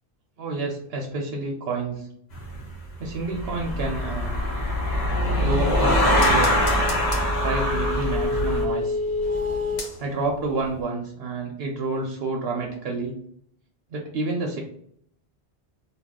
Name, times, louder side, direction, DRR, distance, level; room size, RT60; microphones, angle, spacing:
voice 1, 0.4-2.1 3.0-4.3 5.4-6.7 7.4-9.0 10.0-13.1 13.9-14.6, right 3 dB, 70° right, 0 dB, 0.8 m, -29 dB
sound 1, 2.3-2.6 3.2-8.6, left 1 dB, 45° left, 1.0 m, -23 dB
sound 2, 5.2-10.4 10.7-10.8, left 3 dB, 85° left, 1.0 m, -29 dB
2.3 x 2.3 x 3.6 m, 0.69 s
omnidirectional pair, 1.1 m